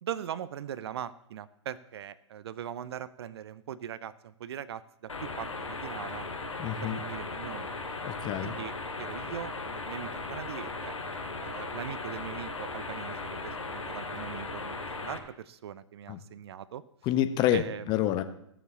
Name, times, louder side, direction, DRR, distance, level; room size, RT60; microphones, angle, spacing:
voice 1, 0.0-6.3 6.8-7.7 8.4-11.0 11.4-16.8 17.5-17.8, right 10 dB, 55° right, 17 dB, 0.7 m, -40 dB
sound 1, 5.1-15.2, left 3 dB, 80° left, 2.6 m, -37 dB
voice 2, 6.6-7.0 8.0-8.5 16.1-16.2 17.0-18.2, left 12 dB, 25° left, 10 dB, 1.1 m, -28 dB
16.5 x 7.3 x 7.0 m, 0.74 s
figure-of-eight pair, 120°, 16 cm